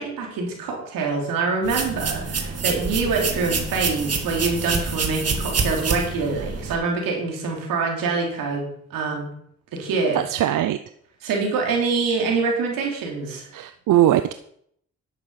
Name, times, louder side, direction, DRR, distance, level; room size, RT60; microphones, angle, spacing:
voice 1, 0.0-9.3 9.7-10.5 11.2-13.5, right 4 dB, 90° right, 0 dB, 3.6 m, -25 dB
sound 1, 1.6-6.7, right 4 dB, 45° right, 2.1 m, -27 dB
voice 2, 10.1-10.8 13.5-14.3, right 12 dB, 70° right, 12 dB, 0.7 m, -20 dB
11.0 x 8.3 x 5.8 m, 0.67 s
cardioid pair, 70°, 33 cm